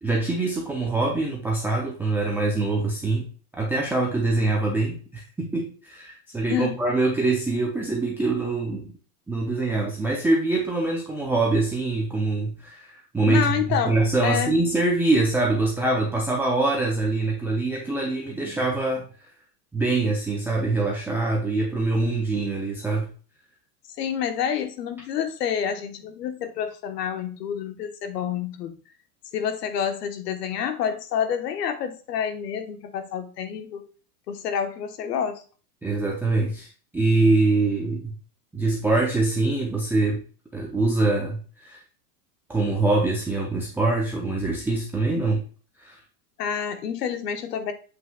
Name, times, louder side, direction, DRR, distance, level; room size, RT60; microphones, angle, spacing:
voice 1, 0.0-3.3 3.5-8.9 9.3-19.1 19.7-23.1 35.8-36.7 36.9-38.1 38.5-40.2 40.5-41.8 42.5-45.4 45.8-46.0, right 2 dB, 5° right, -2 dB, 0.5 m, -24 dB
voice 2, 13.2-14.0 14.2-14.5 24.0-28.7 29.3-33.9 34.3-35.4 46.4-47.7, left 8 dB, 80° left, 7 dB, 1.2 m, -28 dB
7.8 x 5.7 x 2.3 m, 0.38 s
supercardioid pair, 135°, 47 cm